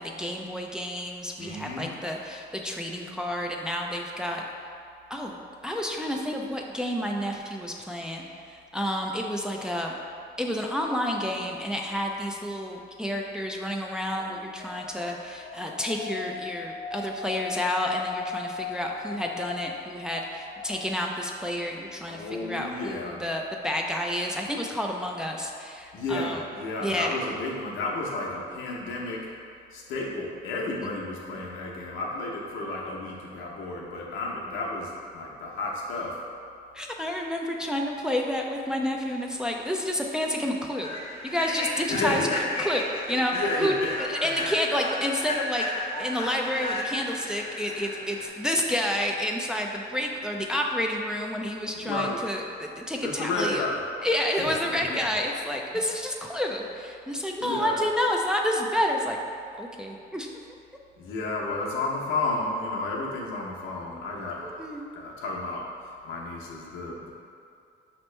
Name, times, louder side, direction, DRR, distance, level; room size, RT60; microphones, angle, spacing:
voice 1, 0.0-4.4 5.1-5.4 5.6-9.9 10.4-26.4 26.8-27.2 36.7-40.9 41.2-43.3 43.6-43.7 44.0-53.6 54.0-59.2 59.6-60.3 64.4-64.9, left 1 dB, 5° right, 0 dB, 0.4 m, -30 dB
voice 2, 1.4-2.0 22.1-23.2 25.9-29.3 29.7-36.2 41.9-42.4 43.3-43.9 44.2-44.3 51.8-52.2 53.0-53.8 54.4-54.5 54.9-55.0 57.4-57.8 61.0-67.1, left 2 dB, 85° left, -3 dB, 0.8 m, -32 dB
sound 1, 10.8-11.6 14.0-21.5, left 6 dB, 65° left, 0.4 m, -39 dB
Human voice / Train, 39.4-39.6 40.0-40.2 40.7-48.3, left 1 dB, 30° left, 0.7 m, -33 dB
5.2 x 2.9 x 3.2 m, 2.4 s
cardioid pair, 90°, 20 cm